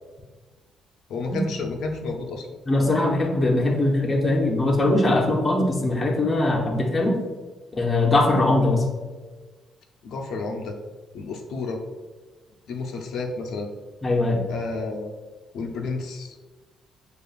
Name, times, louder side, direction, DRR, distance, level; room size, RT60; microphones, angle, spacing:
voice 1, 1.1-2.9 10.0-10.8 11.1-11.8 12.7-13.7 14.5-15.1 15.5-16.4, left 3 dB, 80° left, 2 dB, 0.4 m, -31 dB
voice 2, 2.7-7.1 7.8-8.8 14.0-14.4, left 2 dB, 20° left, -1 dB, 0.6 m, -21 dB
6.4 x 2.4 x 2.4 m, 1.3 s
cardioid pair, 160°, 0 cm